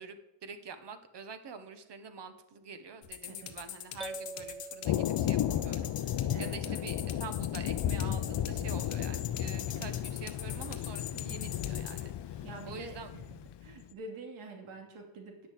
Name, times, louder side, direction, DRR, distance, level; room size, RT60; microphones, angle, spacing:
voice 1, 0.0-13.1, right 5 dB, 55° right, 9 dB, 1.6 m, -46 dB
sound 1, 3.0-12.0, left 11 dB, 85° left, 1.4 m, -43 dB
sound 2, 4.0-5.9, right 3 dB, ahead, 0.4 m, -45 dB
Thunder, 4.8-13.8, left 11 dB, 55° left, 0.7 m, -34 dB
voice 2, 6.3-6.9 9.7-9.9 12.4-13.2 13.6-15.5, right 3 dB, 75° right, 2 dB, 2.8 m, -46 dB
9.7 x 6.9 x 7.8 m, 0.92 s
cardioid pair, 80°, 50 cm